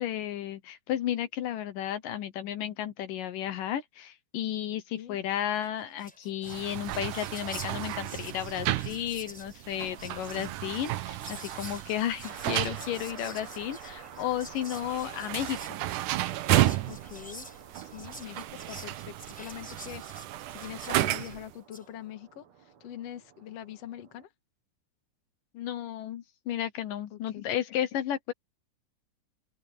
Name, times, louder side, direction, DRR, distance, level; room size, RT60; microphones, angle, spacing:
voice 1, 0.0-15.6 25.5-28.3, left 11 dB, 75° left, 2.6 m, -33 dB
Whispering, 5.6-5.7 5.9-21.9, equal, ahead, 4.9 m, -49 dB
sound 1, 6.5-21.5, right 15 dB, 75° right, 2.2 m, -33 dB
sound 2, 12.2-24.3, right 7 dB, 55° right, 2.9 m, -50 dB
voice 2, 16.9-17.5 17.9-20.0 20.5-24.3 27.1-27.5, left 11 dB, 55° left, 2.4 m, -43 dB
open air
omnidirectional pair, 4.0 m